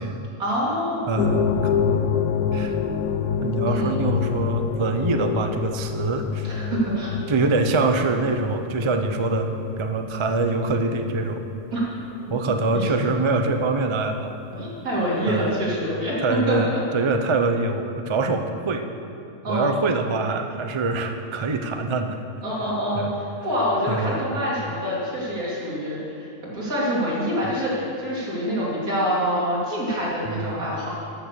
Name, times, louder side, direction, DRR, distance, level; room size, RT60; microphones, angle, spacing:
voice 1, 0.4-1.0 3.7-4.0 6.4-7.1 11.7-11.8 12.7-12.9 14.5-16.8 19.4-19.8 22.4-30.9, equal, 70° right, -6 dB, 3.5 m, -26 dB
voice 2, 1.1-2.0 2.5-2.8 3.4-6.5 7.3-11.5 12.3-14.4 15.3-15.5 16.2-16.7 16.9-18.9 19.5-22.2 22.9-23.1 23.9-24.2 27.5-27.6 30.3-30.7, right 3 dB, 45° right, 6 dB, 0.4 m, -24 dB
sound 1, 1.2-13.8 14.0-14.1 14.8-14.9, left 7 dB, 75° left, 1.0 m, -27 dB
13.0 x 6.7 x 6.8 m, 2.5 s
omnidirectional pair, 1.6 m